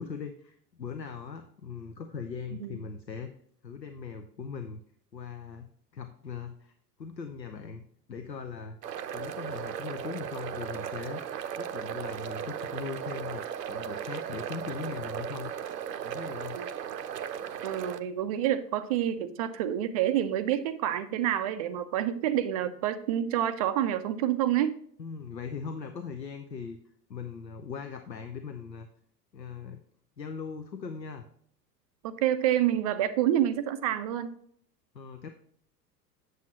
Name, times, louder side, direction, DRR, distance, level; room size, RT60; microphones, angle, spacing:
voice 1, 0.0-3.3 3.6-4.8 5.1-5.7 5.9-6.7 7.0-8.8 9.1-15.5 16.0-16.6 25.0-26.8 27.1-28.9 29.3-29.8 30.2-31.2 34.9-35.3, left 5 dB, 85° left, 7 dB, 0.7 m, -40 dB
sound 1, 8.8-18.0, right 8 dB, 75° right, 0.7 m, -36 dB
voice 2, 17.6-24.8 32.0-34.3, right 11 dB, 25° right, 11 dB, 0.3 m, -28 dB
8.1 x 7.7 x 2.8 m, 0.64 s
figure-of-eight pair, 85°, 49 cm